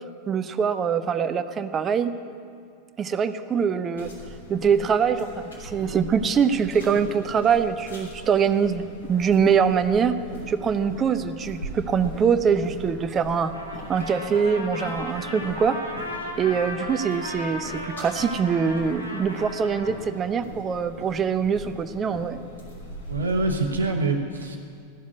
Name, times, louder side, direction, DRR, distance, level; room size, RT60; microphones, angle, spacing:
voice 1, 0.3-2.1 3.0-4.1 4.5-10.1 10.5-13.5 13.9-15.8 16.4-22.4, right 6 dB, 25° right, 11 dB, 0.6 m, -23 dB
sound 1, 3.9-23.9, left 1 dB, 70° left, 3.3 m, -41 dB
Trumpet, 13.4-20.0, left 1 dB, 85° left, 1.7 m, -36 dB
voice 2, 23.1-24.6, right 3 dB, 75° right, 2 dB, 1.0 m, -25 dB
14.5 x 7.3 x 9.3 m, 2.3 s
figure-of-eight pair, 90°, 0 cm